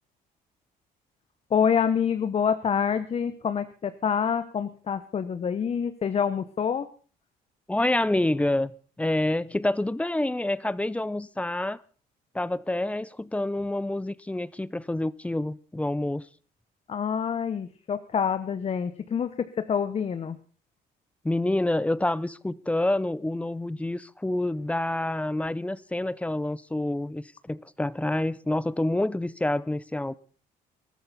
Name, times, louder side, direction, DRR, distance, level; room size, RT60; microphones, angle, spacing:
voice 1, 1.5-6.9 16.9-20.4, left 7 dB, 40° left, 1.0 m, -27 dB
voice 2, 7.7-8.7 9.0-11.8 12.3-16.3 21.2-30.1, left 1 dB, 10° left, 0.6 m, -27 dB
21.0 x 13.5 x 4.1 m
cardioid pair, 105°, 16 cm